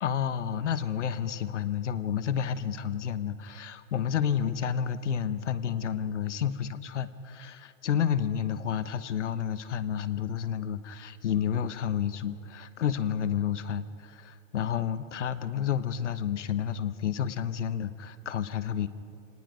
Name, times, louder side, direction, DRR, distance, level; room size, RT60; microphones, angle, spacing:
voice 1, 0.0-18.9, left 8 dB, 65° left, 13 dB, 1.0 m, -30 dB
26.5 x 19.0 x 5.1 m, 2.4 s
hypercardioid pair, 170°, 39 cm